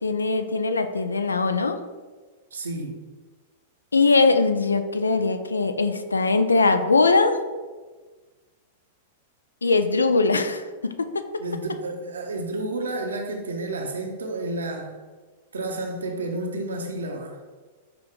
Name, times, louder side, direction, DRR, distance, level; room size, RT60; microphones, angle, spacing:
voice 1, 0.0-1.8 3.9-7.4 9.6-11.2, left 3 dB, 85° left, 9 dB, 0.3 m, -21 dB
voice 2, 2.5-3.0 11.4-15.0 15.5-17.4, right 2 dB, 80° right, 3 dB, 0.6 m, -31 dB
5.6 x 2.3 x 3.6 m, 1.4 s
figure-of-eight pair, 100°, 0 cm